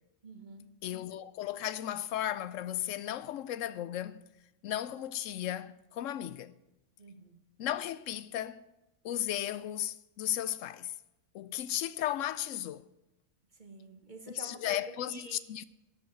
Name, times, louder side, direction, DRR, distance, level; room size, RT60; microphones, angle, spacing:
voice 1, 0.2-0.7 7.0-7.3 13.6-14.8 15.1-15.4, right 2 dB, 40° right, 1.6 m, -48 dB
voice 2, 0.8-4.2 4.6-6.5 7.6-8.6 9.0-10.9 11.3-12.9 14.3-15.6, left 12 dB, 80° left, 0.9 m, -35 dB
12.0 x 5.5 x 7.9 m
omnidirectional pair, 1.3 m